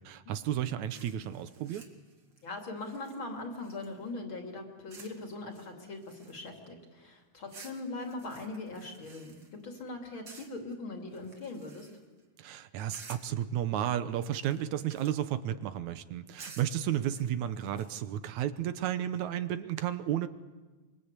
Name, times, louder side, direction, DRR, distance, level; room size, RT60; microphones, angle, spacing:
voice 1, 0.0-1.9 12.4-20.3, right 11 dB, 75° right, 11 dB, 2.3 m, -33 dB
sound 1, 0.9-4.1 4.9-5.2 5.5-6.6 7.5-9.8 10.2-10.7 11.1-12.2 12.9-13.4 14.1-15.4 16.4-17.9, right 4 dB, 40° right, 2.8 m, -53 dB
voice 2, 2.4-11.9, left 2 dB, 40° left, 3 dB, 3.4 m, -41 dB
25.5 x 23.5 x 8.2 m, 1.3 s
omnidirectional pair, 3.4 m